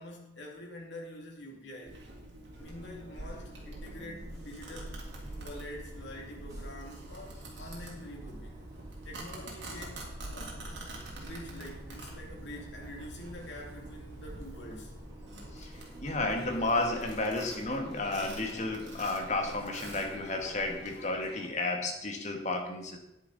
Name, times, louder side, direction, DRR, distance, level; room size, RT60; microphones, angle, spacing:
voice 1, 0.0-2.0 2.6-5.0 5.4-8.6 9.0-10.6 11.2-14.9, left 1 dB, 75° left, -1 dB, 2.5 m, -46 dB
Domestic sounds home sounds, 1.9-21.0, right 1 dB, 80° right, 2.9 m, -45 dB
Bus, 2.6-16.6, equal, 20° right, 2.5 m, -52 dB
sound 1, 16.0-21.5, left 1 dB, 60° left, 1.5 m, -49 dB
voice 2, 16.0-23.0, left 2 dB, 40° left, 3 dB, 1.6 m, -32 dB
10.0 x 10.0 x 4.0 m, 0.84 s
head